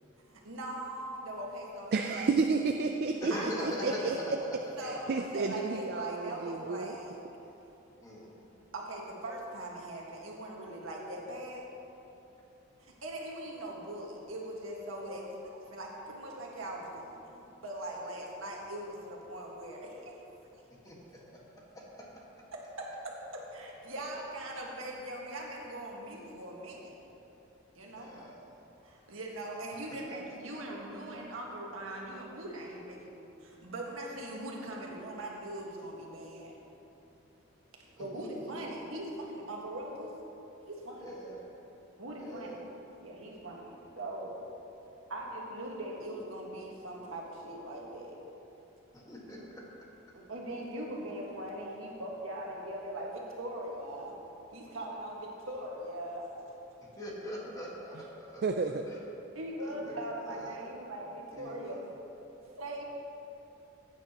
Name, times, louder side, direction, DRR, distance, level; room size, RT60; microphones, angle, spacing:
voice 1, 0.2-1.9 3.3-4.2 4.8-7.2 8.3-11.7 12.8-20.1 22.8-26.9 27.7-28.1 28.8-36.5 38.0-40.1 40.6-41.1 42.0-42.6 43.0-44.4 45.1-48.2 50.1-54.1 54.5-56.3 59.3-61.8 62.6-62.8, right 1 dB, 90° right, -2 dB, 1.7 m, -41 dB
voice 2, 1.9-4.4 4.8-7.0 57.9-58.0 58.4-58.8, right 4 dB, 50° right, 5 dB, 0.4 m, -31 dB
voice 3, 3.2-4.0 5.1-5.2 8.0-8.3 20.8-21.0 21.3-21.4 21.9-22.0 28.0-28.4 38.1-38.5 41.0-41.5 42.2-42.6 48.9-49.6 57.0-58.4 58.9-59.0 59.6-60.7 61.3-61.8, equal, 20° left, -4 dB, 1.6 m, -42 dB
14.5 x 8.9 x 3.0 m, 3.0 s
head